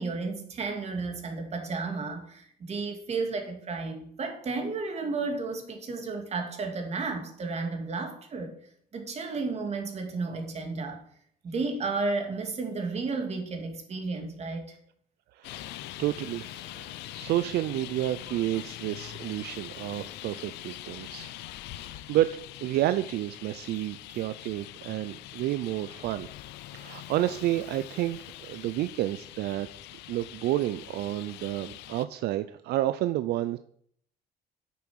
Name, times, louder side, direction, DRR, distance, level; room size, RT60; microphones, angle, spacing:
voice 1, 0.0-8.5 8.9-11.0 11.4-14.8, right 3 dB, 40° right, 4 dB, 2.4 m, -33 dB
Traffic noise roadway noise, 15.4-32.0, left 15 dB, 90° left, 0.6 m, -43 dB
voice 2, 15.4-21.3 21.8-22.3 22.6-26.3 26.7-29.7 30.1-33.6, right 14 dB, 75° right, 12 dB, 0.5 m, -30 dB
8.6 x 7.0 x 6.3 m, 0.64 s
cardioid pair, 110°, 17 cm